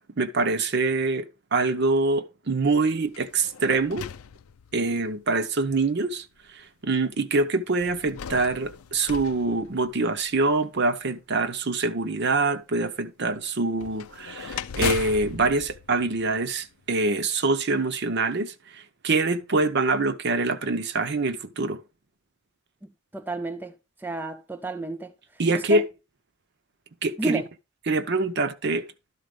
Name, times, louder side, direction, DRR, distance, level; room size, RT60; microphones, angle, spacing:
voice 1, 0.0-4.1 4.7-6.2 6.5-21.8 25.4-25.8 27.0-27.4 27.9-28.9, right 3 dB, 50° right, 0.7 m, -25 dB
sound 1, 3.1-5.1 5.9-6.0 7.8-10.4 13.8-16.8, left 7 dB, 85° left, 0.5 m, -37 dB
voice 2, 23.1-23.7 24.0-25.1 25.5-25.8 27.2-27.5, right 2 dB, 10° right, 0.4 m, -31 dB
11.5 x 4.2 x 5.2 m
head